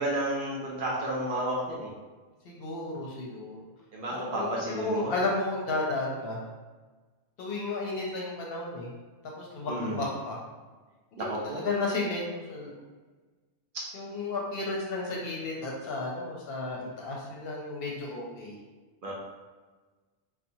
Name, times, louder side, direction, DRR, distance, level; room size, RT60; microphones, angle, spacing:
voice 1, 0.0-1.9 3.9-5.1 9.7-10.0 11.2-11.6 13.7-13.8 19.0-19.1, right 1 dB, 60° right, -5 dB, 0.6 m, -31 dB
voice 2, 2.4-3.6 4.3-4.5 4.7-6.4 7.4-8.9 9.4-10.4 11.1-12.8 13.9-18.5, left 2 dB, 65° left, -2 dB, 0.7 m, -33 dB
2.8 x 2.1 x 2.6 m, 1.3 s
omnidirectional pair, 1.2 m